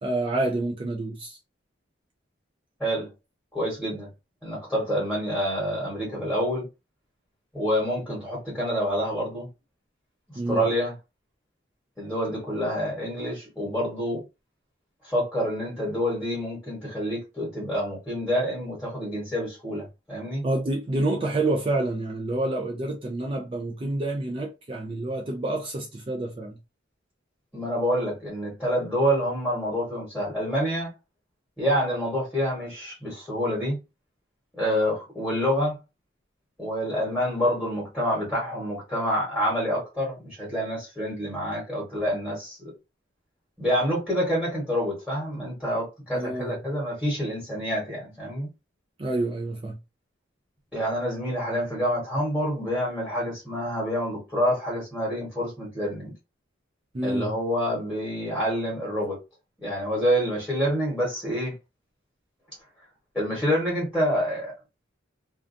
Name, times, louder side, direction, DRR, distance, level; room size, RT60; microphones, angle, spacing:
voice 1, 0.0-1.4 10.4-10.7 20.4-26.6 46.1-46.6 49.0-49.8 56.9-57.4, right 2 dB, 30° right, 0.4 m, -28 dB
voice 2, 2.8-3.1 3.5-4.1 4.4-6.7 7.5-9.5 10.5-10.9 12.0-14.2 15.0-20.4 27.5-30.9 31.6-33.8 34.5-35.8 36.6-42.7 43.6-48.5 50.7-56.1 57.0-59.2 59.6-61.5 63.1-64.5, equal, 5° left, 1.2 m, -27 dB
2.5 x 2.2 x 2.5 m
head